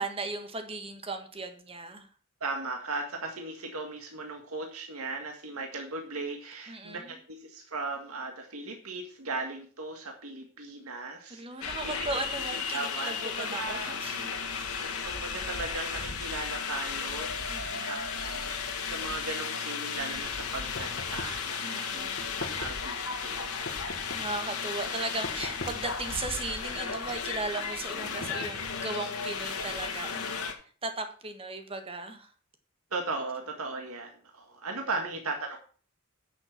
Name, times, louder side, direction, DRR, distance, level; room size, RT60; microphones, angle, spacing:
voice 1, 0.0-2.1 6.7-7.2 11.3-14.3 14.6-14.7 17.5-18.1 21.6-22.3 24.1-30.3 30.8-32.3, right 3 dB, 25° right, 6 dB, 1.6 m, -37 dB
voice 2, 2.4-12.2 12.5-13.9 14.3-22.1 22.4-23.9 28.0-28.3 32.9-35.6, right 3 dB, 80° right, 3 dB, 1.9 m, -38 dB
sound 1, 11.6-30.5, left 6 dB, 85° left, 2.1 m, -34 dB
sound 2, 20.7-21.5 22.2-22.9 23.6-24.4 25.2-26.0 26.7-27.3 28.0-28.9, left 2 dB, 55° left, 1.6 m, -42 dB
10.0 x 6.7 x 5.9 m, 0.41 s
head